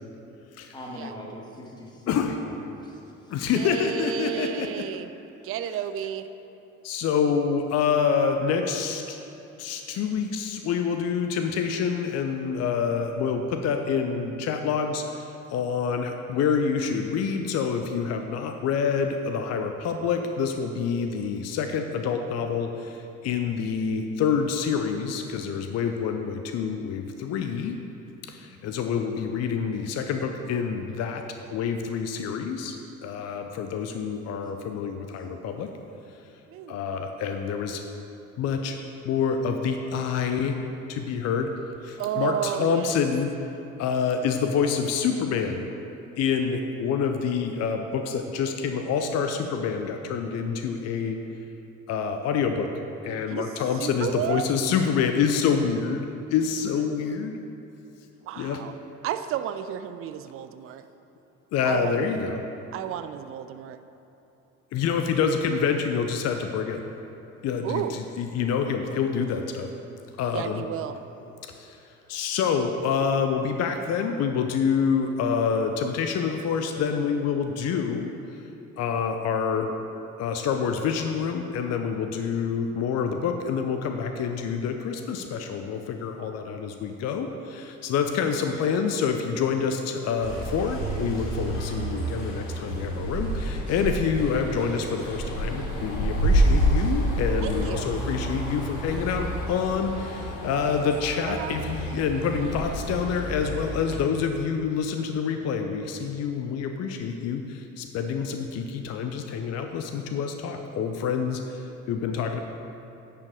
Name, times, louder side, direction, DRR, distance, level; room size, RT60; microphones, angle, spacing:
voice 1, 0.7-2.1 2.4-3.0 3.2-3.3 71.1-71.3, left 1 dB, 10° left, -3 dB, 1.8 m, -42 dB
voice 2, 2.1-2.4 3.3-4.7 6.8-9.2 9.6-27.8 28.3-31.2 31.5-35.7 36.7-37.8 38.4-38.8 39.0-40.6 40.9-41.5 41.8-43.3 43.8-45.7 46.2-51.2 51.9-52.7 53.0-56.0 56.3-57.4 58.4-58.6 61.5-62.4 64.7-66.8 67.4-69.7 70.2-70.6 71.6-71.8 72.1-78.1 78.8-79.7 80.2-112.4, left 6 dB, 40° left, 5 dB, 0.7 m, -27 dB
voice 3, 3.5-5.1 5.4-6.2 36.5-36.8 42.0-43.0 53.3-53.4 53.8-54.4 58.3-58.7 59.0-60.8 61.6-62.0 62.7-63.8 67.6-68.0 70.3-71.0 97.4-97.9 101.3-102.2, right 10 dB, 35° right, 11 dB, 0.5 m, -32 dB
sound 1, 90.2-104.0, right 1 dB, 60° left, 2.4 m, -28 dB
10.5 x 6.9 x 5.1 m, 3.0 s
figure-of-eight pair, 60°, 41 cm